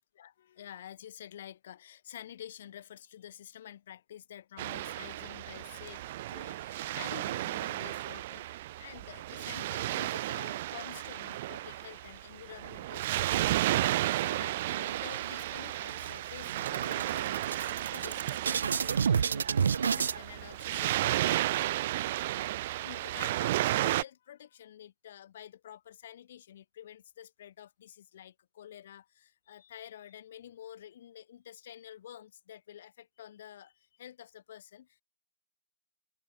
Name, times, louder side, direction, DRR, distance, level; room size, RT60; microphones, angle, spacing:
voice 1, 0.2-6.0 6.3-35.0, left 10 dB, 40° left, 1.2 m, -49 dB
Waves surf, 4.6-24.0, right 15 dB, 30° right, 0.4 m, -33 dB
sound 1, 14.9-15.6 16.0-16.1 16.4-20.2, right 6 dB, 70° right, 0.7 m, -30 dB
hypercardioid pair, 175°, 0 cm